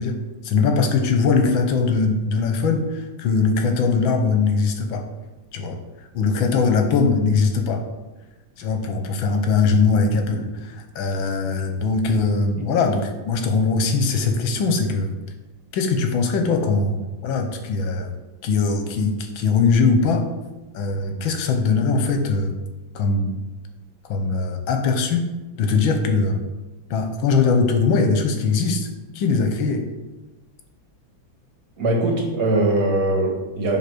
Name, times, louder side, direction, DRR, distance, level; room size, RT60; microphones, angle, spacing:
voice 1, 0.0-5.0 5.5-5.8 6.1-7.8 8.6-15.1 15.7-18.1 18.4-20.2 20.7-22.6 22.9-23.4 24.1-25.3 25.6-26.4 26.9-28.9 29.1-29.9, left 4 dB, 80° left, 5 dB, 1.7 m, -21 dB
voice 2, 31.8-33.8, right 2 dB, 55° right, 1 dB, 1.8 m, -21 dB
7.7 x 3.7 x 6.1 m, 1.1 s
omnidirectional pair, 2.1 m